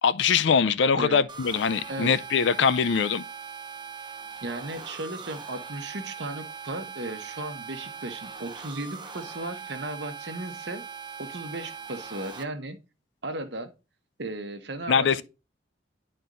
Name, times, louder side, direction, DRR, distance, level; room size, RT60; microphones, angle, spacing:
voice 1, 0.0-3.2 14.9-15.2, left 6 dB, 75° left, 0.4 m, -22 dB
sound 1, 1.3-12.4, right 6 dB, 25° right, 0.7 m, -41 dB
voice 2, 4.4-10.8 11.2-12.8 13.2-13.7 14.2-15.2, right 2 dB, 65° right, 1.1 m, -35 dB
10.5 x 4.3 x 2.5 m
head